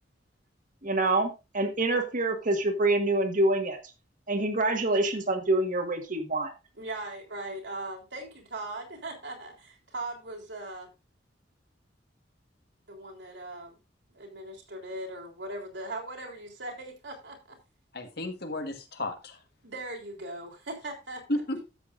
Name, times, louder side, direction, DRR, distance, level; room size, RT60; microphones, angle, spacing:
voice 1, 0.8-3.8 4.3-6.5, right 2 dB, 45° right, 6 dB, 1.7 m, -26 dB
voice 2, 6.8-10.9 12.9-13.8 14.1-17.6 19.6-21.4, right 2 dB, 75° right, 0 dB, 3.5 m, -39 dB
voice 3, 17.9-19.4 21.3-21.7, left 1 dB, 60° left, 5 dB, 1.7 m, -33 dB
13.0 x 8.2 x 2.6 m, 0.27 s
head